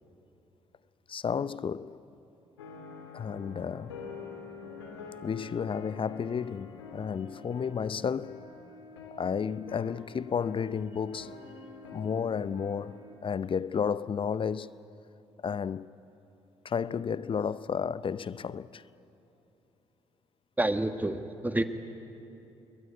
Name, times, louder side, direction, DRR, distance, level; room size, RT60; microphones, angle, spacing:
voice 1, 1.1-2.0 3.1-4.0 5.2-8.4 9.2-11.4 11.9-14.7 15.4-15.9 16.6-18.8, left 7 dB, 40° left, 0.7 m, -32 dB
sound 1, 2.6-13.1, left 4 dB, 85° left, 2.7 m, -46 dB
voice 2, 20.6-21.6, right 1 dB, 10° right, 1.8 m, -28 dB
28.0 x 22.0 x 9.5 m
hypercardioid pair, 45°, 14 cm